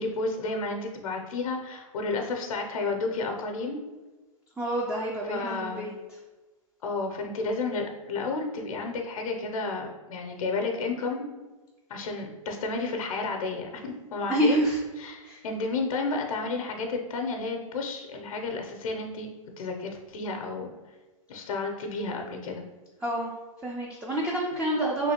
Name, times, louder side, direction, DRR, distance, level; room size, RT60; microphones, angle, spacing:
voice 1, 0.0-3.8 5.3-5.9 6.8-11.4 11.9-14.6 15.0-19.3 19.6-20.7 21.3-22.6, left 3 dB, 75° left, 3 dB, 0.6 m, -31 dB
voice 2, 4.6-5.9 14.3-14.8 15.2-15.4 23.0-23.3 23.6-25.1, right 1 dB, 5° right, -3 dB, 0.3 m, -27 dB
3.2 x 2.7 x 2.8 m, 1.2 s
hypercardioid pair, 120°, 18 cm